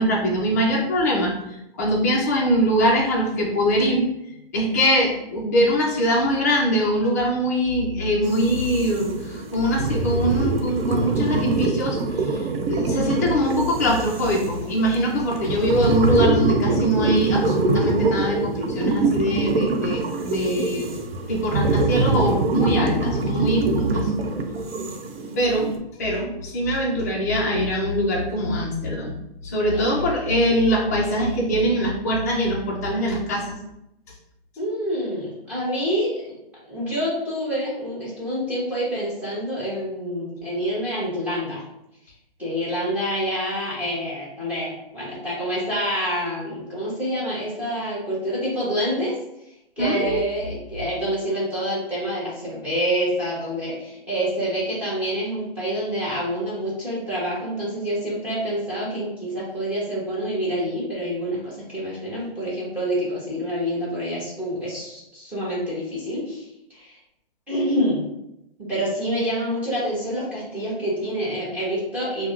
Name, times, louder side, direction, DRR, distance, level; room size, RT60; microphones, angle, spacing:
voice 1, 0.0-1.3 1.8-4.0 4.5-12.4 12.7-20.9 21.3-24.1 25.4-25.7 26.0-29.2 29.4-33.6 49.8-50.2, equal, 20° left, -3 dB, 0.3 m, -22 dB
sound 1, 8.2-25.8, right 3 dB, 75° right, 0.6 m, -24 dB
voice 2, 34.6-36.4 36.7-41.6 42.4-49.2 49.8-67.0 67.5-68.0 68.7-72.3, equal, 5° right, -7 dB, 0.9 m, -27 dB
3.5 x 2.1 x 2.4 m, 0.85 s
hypercardioid pair, 150°, 30 cm